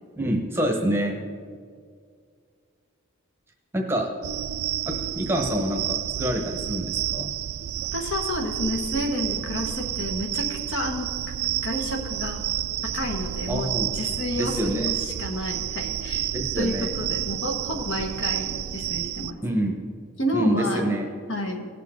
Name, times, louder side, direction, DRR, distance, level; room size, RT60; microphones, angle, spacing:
voice 1, 0.2-1.2 3.7-4.1 4.9-7.3 13.5-13.9 14.3-14.9 16.3-16.9 19.4-19.8 20.3-21.1, right 1 dB, 10° right, 1 dB, 1.0 m, -26 dB
sound 1, 4.2-19.3, right 12 dB, 80° right, 0.3 m, -30 dB
voice 2, 7.9-11.1 11.6-12.4 12.9-16.3 16.6-19.4 20.2-21.0 21.3-21.7, equal, 55° left, 2 dB, 1.4 m, -30 dB
17.5 x 6.7 x 3.8 m, 2.1 s
head